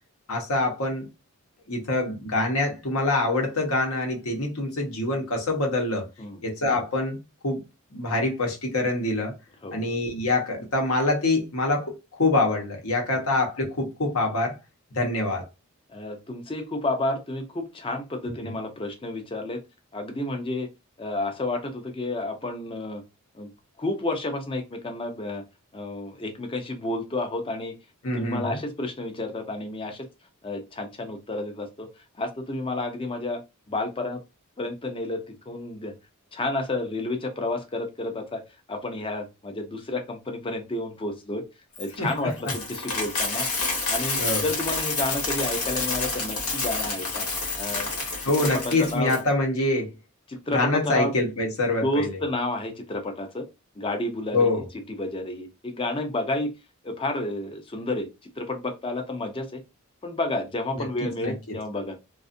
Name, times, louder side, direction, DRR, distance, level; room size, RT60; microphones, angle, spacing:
voice 1, 0.3-1.1 1.7-6.1 6.4-7.2 7.4-7.6 7.9-9.3 9.7-14.6 14.9-15.5 18.2-18.6 28.0-28.6 42.0-42.3 44.2-44.5 48.2-49.9 50.5-52.1 54.3-54.7 60.7-60.8 61.2-61.3, left 2 dB, 70° left, 0.9 m, -25 dB
voice 2, 15.9-19.6 19.9-20.7 21.0-23.0 23.3-23.5 23.8-25.4 25.7-27.7 28.1-30.1 30.4-31.9 32.2-33.4 33.7-34.2 34.6-35.9 36.3-38.4 38.7-41.4 41.8-43.5 43.9-47.3 47.6-47.9 48.4-49.1 50.3-51.1 51.8-53.5 53.8-54.5 55.0-56.5 56.8-58.1 58.4-59.6 60.0-62.0, left 2 dB, 25° left, 0.5 m, -30 dB
Coin (dropping), 41.8-49.2, left 3 dB, 85° left, 1.1 m, -29 dB
2.5 x 2.4 x 2.5 m
head